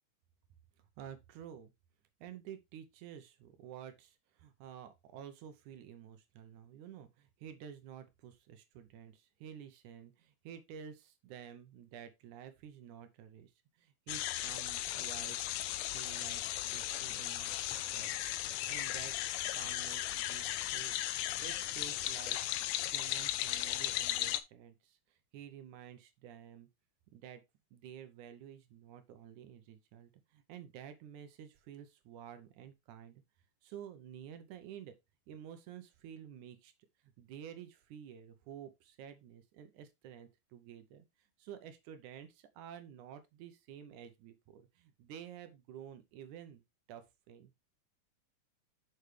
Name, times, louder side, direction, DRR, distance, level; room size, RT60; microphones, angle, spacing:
voice 1, 1.0-1.7 2.2-15.5 15.9-19.1 19.5-22.4 22.8-26.7 27.1-27.4 27.7-33.2 33.6-35.0 35.3-36.7 37.2-46.6 46.9-47.5, right 9 dB, 75° right, 2.1 m, -51 dB
sound 1, 14.1-24.4, left 14 dB, 80° left, 1.8 m, -36 dB
6.7 x 6.3 x 3.2 m
omnidirectional pair, 3.7 m